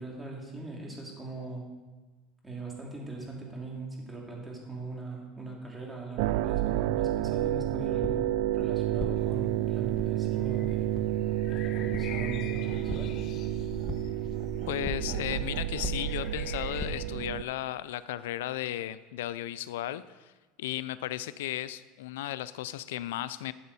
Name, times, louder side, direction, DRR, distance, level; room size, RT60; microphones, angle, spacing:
voice 1, 0.0-1.7 2.4-10.9 11.5-13.2, right 3 dB, 10° right, -2 dB, 2.8 m, -40 dB
sound 1, 6.2-17.4, right 15 dB, 70° right, 0.3 m, -30 dB
sound 2, 7.1-16.9, left 2 dB, 15° left, 1.0 m, -41 dB
sound 3, 9.1-17.0, left 9 dB, 50° left, 0.6 m, -46 dB
voice 2, 14.7-20.3 20.6-23.5, left 13 dB, 85° left, 16 dB, 0.3 m, -35 dB
12.5 x 7.6 x 4.2 m, 1.2 s
supercardioid pair, 115°, 0 cm